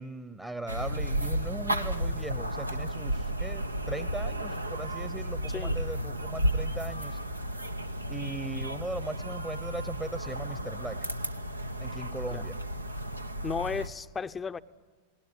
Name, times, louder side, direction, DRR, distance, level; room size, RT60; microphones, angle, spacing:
voice 1, 0.0-7.2 8.1-11.0 11.8-12.6, right 2 dB, 10° right, 12 dB, 0.9 m, -39 dB
sound 1, 0.7-13.9, right 1 dB, 85° right, 0.8 m, -33 dB
voice 2, 13.4-14.6, left 5 dB, 15° left, 13 dB, 0.6 m, -34 dB
20.0 x 19.0 x 9.1 m, 1.4 s
figure-of-eight pair, 90°, 0 cm